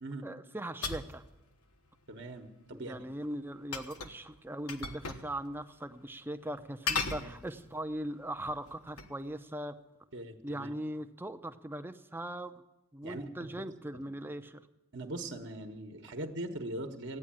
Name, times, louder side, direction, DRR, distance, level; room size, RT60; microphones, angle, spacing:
voice 1, 0.2-1.2 2.7-9.7 10.4-12.6 12.9-14.7, right 1 dB, 10° right, 10 dB, 0.6 m, -40 dB
sound 1, 0.8-1.2 3.7-4.2 4.7-5.3 5.6-5.7 6.9-7.8 8.4-9.2, left 4 dB, 85° left, 1.3 m, -36 dB
voice 2, 2.1-3.1 7.2-7.3 10.1-10.7 13.0-13.6 13.9-14.1 14.9-17.2, right 1 dB, 55° right, 5 dB, 1.2 m, -41 dB
14.5 x 9.5 x 8.8 m, 0.99 s
head